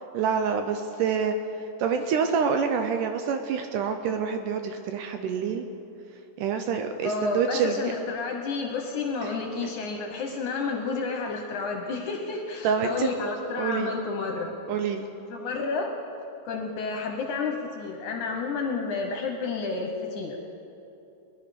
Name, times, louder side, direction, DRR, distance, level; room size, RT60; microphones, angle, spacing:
voice 1, 0.1-1.4 1.8-5.6 6.4-7.8 9.2-9.3 12.6-13.1 13.6-13.9 14.7-15.1, right 6 dB, 80° right, 6 dB, 1.9 m, -27 dB
voice 2, 7.0-14.5 15.3-15.9 16.4-20.4, left 4 dB, 65° left, 2 dB, 2.1 m, -30 dB
21.0 x 11.5 x 5.1 m, 2.8 s
omnidirectional pair, 4.4 m